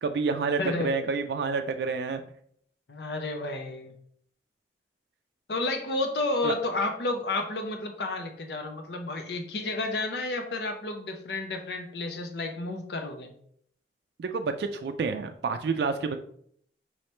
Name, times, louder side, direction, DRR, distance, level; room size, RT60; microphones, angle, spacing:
voice 1, 0.0-2.2 6.4-6.5 14.2-16.2, right 4 dB, 70° right, 7 dB, 0.3 m, -29 dB
voice 2, 0.6-0.9 2.9-3.9 5.5-13.3, left 2 dB, 70° left, 5 dB, 0.6 m, -31 dB
5.5 x 3.0 x 3.2 m, 0.65 s
head